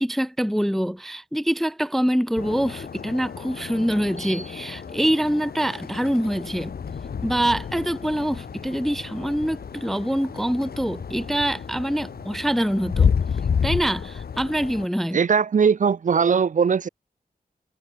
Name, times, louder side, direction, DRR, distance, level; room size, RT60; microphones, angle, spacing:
voice 1, 0.0-6.7 7.2-13.1 13.6-15.2, equal, ahead, 0.4 m, -25 dB
sound 1, 2.4-14.9, left 6 dB, 90° left, 1.8 m, -30 dB
sound 2, 2.9-3.0 3.9-13.3, right 2 dB, 20° right, 3.0 m, -49 dB
voice 2, 15.1-16.9, right 6 dB, 55° right, 0.7 m, -20 dB
wide cardioid pair, 125°, 15 cm